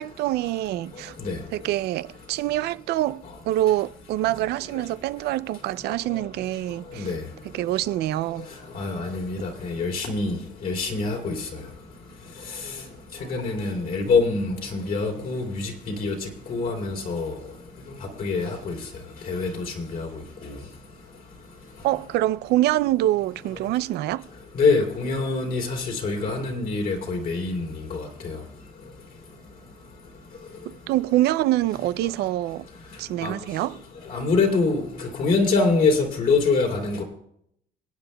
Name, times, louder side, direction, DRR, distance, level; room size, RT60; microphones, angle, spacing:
voice 1, 0.0-1.1 1.5-7.1 7.5-8.5 21.8-24.3 30.7-32.7 33.0-33.8, right 14 dB, 75° right, 0.4 m, -25 dB
voice 2, 8.7-10.4 10.6-11.4 13.3-16.1 16.5-17.3 18.2-18.7 19.3-20.1 24.5-28.4 33.2-33.3 34.1-37.0, left 4 dB, 55° left, 3.1 m, -25 dB
26.5 x 9.0 x 2.2 m
cardioid pair, 110°, 17 cm